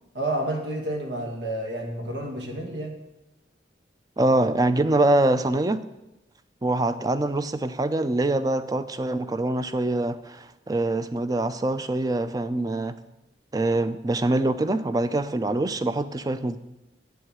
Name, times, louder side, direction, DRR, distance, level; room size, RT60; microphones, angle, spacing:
voice 1, 0.1-3.0, right 1 dB, 85° right, 2.1 m, -30 dB
voice 2, 4.2-5.8 6.6-13.0 13.5-16.6, right 2 dB, 20° right, 0.5 m, -24 dB
8.2 x 8.0 x 8.0 m
head